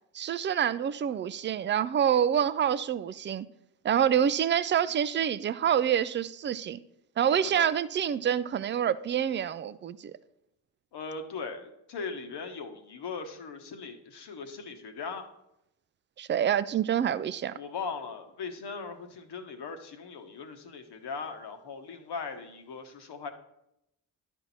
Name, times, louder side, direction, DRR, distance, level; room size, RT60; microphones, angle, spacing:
voice 1, 0.1-3.5 3.8-6.8 7.2-10.1 16.2-17.5, right 9 dB, 25° right, 0.4 m, -27 dB
voice 2, 10.9-15.3 17.5-23.3, left 5 dB, 55° left, 1.2 m, -39 dB
11.0 x 4.5 x 4.1 m
hypercardioid pair, 45°, 47 cm